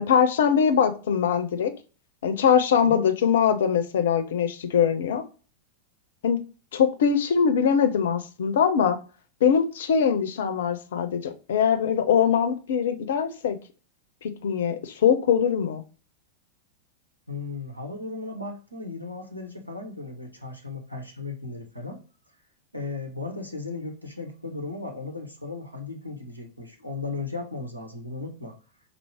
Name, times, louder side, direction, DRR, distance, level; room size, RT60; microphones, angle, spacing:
voice 1, 0.0-1.7 2.2-5.2 6.2-6.4 6.7-9.0 9.4-13.6 14.2-15.8, left 7 dB, 60° left, 9 dB, 0.5 m, -22 dB
voice 2, 17.3-22.0 22.7-28.5, left 3 dB, 90° right, 2 dB, 0.9 m, -36 dB
4.5 x 2.0 x 3.4 m, 0.35 s
figure-of-eight pair, 90°, 0 cm